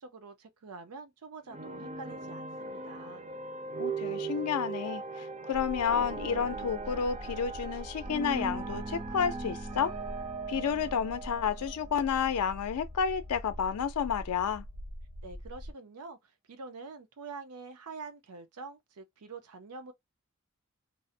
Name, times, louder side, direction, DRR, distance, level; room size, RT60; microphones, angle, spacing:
voice 1, 0.0-3.2 15.2-19.9, right 4 dB, 80° right, 0.5 m, -46 dB
sound 1, 1.5-12.7, right 3 dB, 30° right, 0.4 m, -39 dB
voice 2, 3.8-9.9 10.5-14.6, left 7 dB, 85° left, 0.4 m, -31 dB
sound 2, 5.5-15.7, equal, 35° left, 0.5 m, -44 dB
2.6 x 2.0 x 2.5 m
head